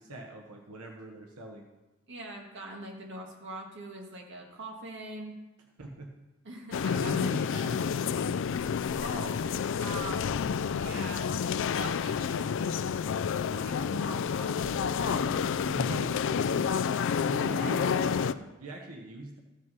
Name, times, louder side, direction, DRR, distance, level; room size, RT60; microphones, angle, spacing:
voice 1, 0.0-1.7 5.8-6.2 6.9-7.8 14.9-16.7 17.3-19.4, right 2 dB, 85° right, 2 dB, 1.1 m, -42 dB
voice 2, 2.1-5.4 6.4-7.4 9.0-9.4 9.8-10.4 10.7-11.3 11.6-12.8 13.4-15.3 17.5-17.8, right 1 dB, 55° right, 0 dB, 1.8 m, -42 dB
sound 1, 6.7-18.3, left 6 dB, 60° left, 0.3 m, -29 dB
14.0 x 5.5 x 5.5 m, 1.1 s
head